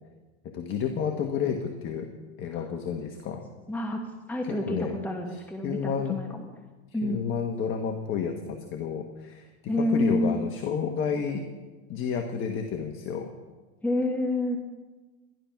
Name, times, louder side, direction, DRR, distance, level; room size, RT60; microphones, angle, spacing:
voice 1, 0.4-2.1 2.4-3.4 4.4-5.0 5.6-6.2 7.0-9.5 9.8-11.5 11.9-13.3, left 7 dB, 35° left, 4 dB, 1.3 m, -30 dB
voice 2, 3.7-4.0 4.3-6.5 6.9-7.3 9.7-10.4 13.8-14.6, left 1 dB, 5° left, 2 dB, 1.2 m, -28 dB
12.0 x 12.0 x 5.9 m, 1.3 s
supercardioid pair, 125°, 34 cm